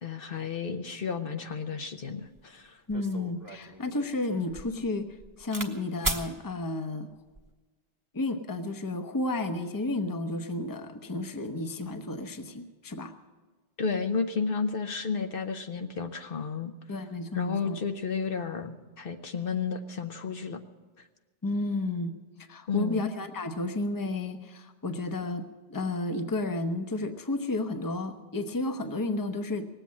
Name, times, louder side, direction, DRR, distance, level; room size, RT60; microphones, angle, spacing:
voice 1, 0.0-2.8 13.8-16.7 17.3-20.6 22.7-23.1, left 5 dB, 65° left, 7 dB, 1.0 m, -32 dB
sound 1, 2.4-2.5 2.9-5.7 6.0-6.3 7.1-7.5, right 2 dB, 20° right, 1.1 m, -36 dB
voice 2, 2.9-7.1 8.1-13.1 16.9-17.8 21.4-22.2 22.5-29.7, left 2 dB, 20° left, 7 dB, 0.8 m, -32 dB
19.0 x 8.0 x 8.4 m, 1.3 s
omnidirectional pair, 1.0 m